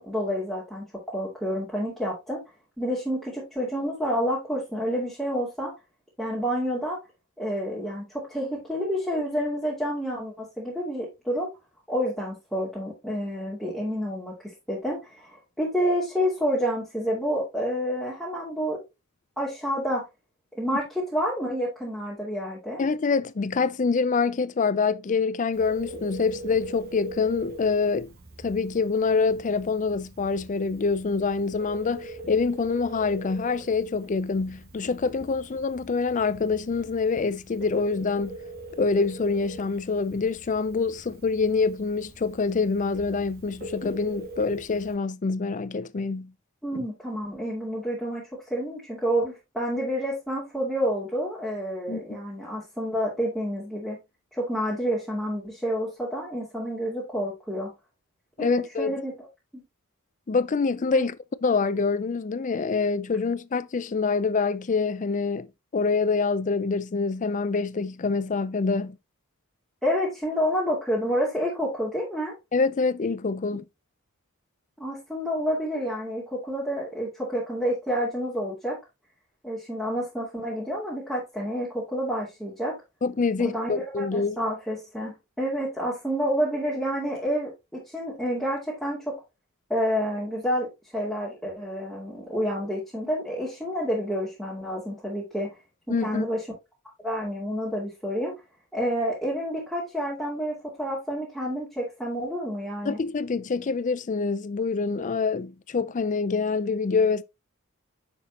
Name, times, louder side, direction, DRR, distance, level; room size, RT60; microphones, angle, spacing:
voice 1, 0.0-2.4 2.8-5.7 6.2-7.0 7.4-11.5 11.9-14.3 14.7-18.8 19.4-20.0 20.5-22.8 46.6-54.0 54.3-57.7 58.4-59.1 59.5-59.6 60.9-61.0 69.8-72.3 74.8-78.8 79.4-82.7 83.4-89.2 89.7-90.7 90.9-95.5 95.9-96.4 97.0-98.3 98.7-103.0, equal, ahead, 2.4 m, -29 dB
voice 2, 22.8-28.1 28.4-38.4 38.8-46.3 51.9-52.0 58.4-59.0 60.3-61.2 61.4-65.5 65.7-69.0 72.5-73.7 83.0-84.4 95.9-96.2 102.9-107.2, left 4 dB, 35° left, 0.4 m, -26 dB
Telephone, 25.5-44.9, right 1 dB, 45° right, 1.9 m, -43 dB
7.1 x 6.1 x 2.8 m
head